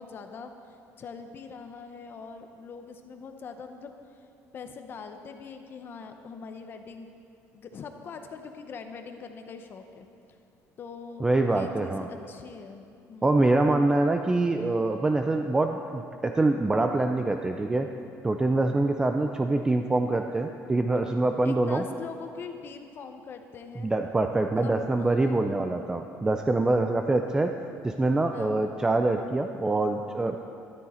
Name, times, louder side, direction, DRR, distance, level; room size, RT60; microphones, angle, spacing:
voice 1, 0.0-4.3 4.5-7.1 7.5-10.4 10.8-13.4 21.4-23.9 24.6-25.5 28.3-28.7, left 5 dB, 40° left, 6 dB, 0.8 m, -43 dB
voice 2, 11.2-12.1 13.2-17.9 18.2-21.8 23.8-27.5 27.8-30.4, right 2 dB, 10° right, 5 dB, 0.4 m, -25 dB
13.5 x 13.0 x 4.3 m, 2.6 s
cardioid pair, 150°, 6 cm